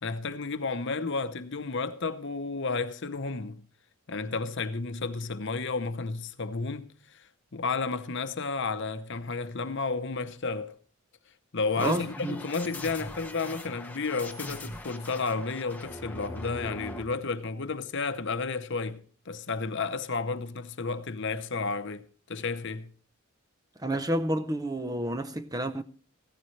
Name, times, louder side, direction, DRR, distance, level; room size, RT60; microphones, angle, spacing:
voice 1, 0.0-3.7 4.1-10.7 11.5-22.9, left 4 dB, 55° left, 0.8 m, -32 dB
sound 1, 11.8-17.0, left 1 dB, 10° left, 0.9 m, -41 dB
voice 2, 11.8-12.4 23.8-25.8, right 1 dB, 15° right, 0.6 m, -30 dB
15.5 x 14.0 x 3.2 m
head